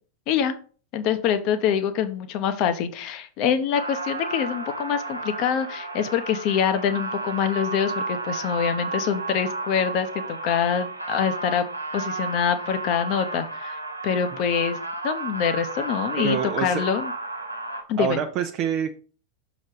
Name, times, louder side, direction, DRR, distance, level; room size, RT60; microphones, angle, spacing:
voice 1, 0.9-11.7 11.9-14.8 15.0-17.1 17.9-18.2, left 8 dB, 40° left, 10 dB, 0.9 m, -25 dB
sound 1, 3.7-17.8, right 3 dB, 85° right, 1.0 m, -32 dB
voice 2, 16.2-16.8 18.0-19.0, right 8 dB, 40° right, 6 dB, 0.6 m, -26 dB
6.4 x 4.0 x 4.8 m, 0.40 s
figure-of-eight pair, 90°, 0 cm